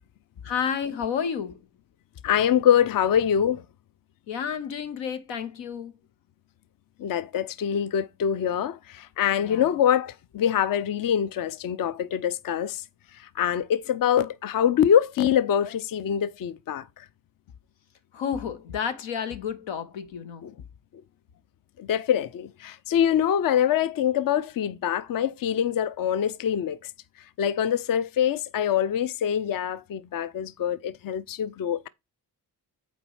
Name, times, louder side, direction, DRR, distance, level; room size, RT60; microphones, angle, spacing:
voice 1, 0.4-1.6 4.3-6.0 9.4-9.7 18.1-20.5, left 7 dB, 85° left, 0.8 m, -31 dB
voice 2, 2.2-3.6 7.0-12.8 13.4-16.8 20.4-20.5 21.8-26.8 27.4-31.9, left 9 dB, 50° left, 0.5 m, -24 dB
5.9 x 4.4 x 4.7 m
supercardioid pair, 50°, 44 cm